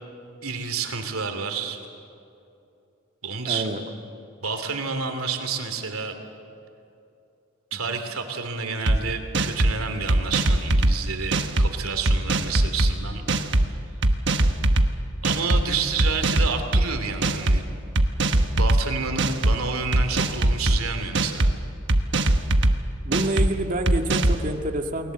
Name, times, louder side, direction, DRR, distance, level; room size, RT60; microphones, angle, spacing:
voice 1, 0.4-1.8 3.2-3.7 4.4-6.2 7.7-13.2 15.2-17.6 18.5-21.5, right 5 dB, 85° right, 6 dB, 2.9 m, -29 dB
voice 2, 3.5-3.8 7.9-8.0 23.1-25.1, right 1 dB, 40° right, 4 dB, 1.9 m, -27 dB
sound 1, 8.9-9.0 9.3-9.7 10.1-10.9 11.3-11.7 12.1-12.9 13.3-13.6 14.0-14.9 15.2-15.6 16.0-16.8 17.2-17.6 18.0-18.8 19.2-19.5 19.9-20.8 21.1-21.5 21.9-22.7 23.1-23.5 23.9-24.4, right 1 dB, 55° right, 1.2 m, -20 dB
29.5 x 21.0 x 7.8 m, 2.7 s
head